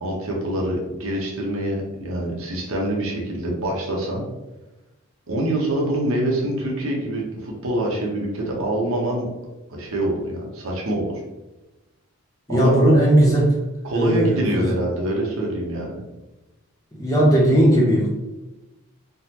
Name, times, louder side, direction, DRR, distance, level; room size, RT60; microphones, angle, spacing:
voice 1, 0.0-4.2 5.3-9.3 9.7-11.2 12.5-12.8 13.8-16.0, right 1 dB, 65° right, -2 dB, 0.8 m, -25 dB
voice 2, 12.5-13.6 13.9-14.7 16.9-18.1, right 1 dB, 15° left, -4 dB, 0.6 m, -17 dB
3.7 x 2.0 x 2.8 m, 1.1 s
head